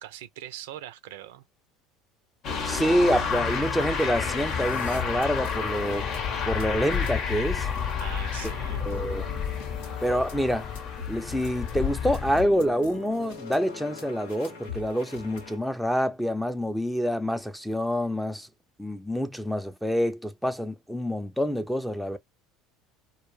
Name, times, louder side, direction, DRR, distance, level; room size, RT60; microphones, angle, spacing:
voice 1, 0.0-1.4 8.0-9.0, right 13 dB, 80° right, 0.4 m, -41 dB
sound 1, 2.4-12.4, left 6 dB, 50° left, 0.8 m, -30 dB
voice 2, 2.7-6.1 6.5-7.7 8.8-9.3 10.0-10.7 11.1-18.5 18.8-22.2, equal, ahead, 0.5 m, -27 dB
sound 2, 3.3-3.4 3.7-15.6, left 6 dB, 80° left, 0.9 m, -41 dB
2.2 x 2.2 x 3.0 m
hypercardioid pair, 80°, 0 cm